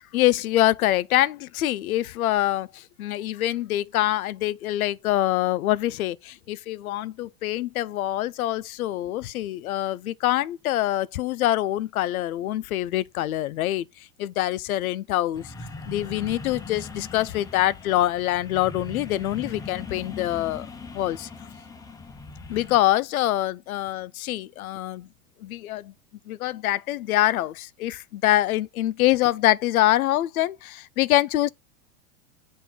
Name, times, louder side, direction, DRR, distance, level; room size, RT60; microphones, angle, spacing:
voice 1, 0.1-13.9 14.2-15.5 15.9-20.7 20.9-21.3 22.5-25.1 25.4-25.9 26.3-31.5, left 14 dB, 85° left, 0.6 m, -25 dB
sound 1, 15.3-22.8, left 4 dB, 10° left, 0.5 m, -40 dB
7.0 x 2.7 x 5.8 m
hypercardioid pair, 110°, 42 cm